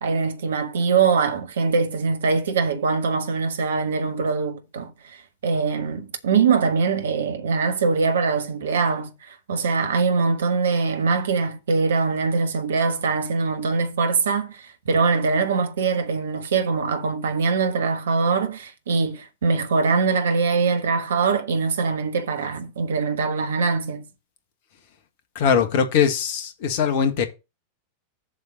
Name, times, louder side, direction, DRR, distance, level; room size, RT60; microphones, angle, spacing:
voice 1, 0.0-24.0, right 4 dB, 65° right, 1.3 m, -23 dB
voice 2, 25.4-27.3, left 7 dB, 50° left, 1.7 m, -21 dB
7.4 x 7.2 x 4.1 m
figure-of-eight pair, 90°, 0 cm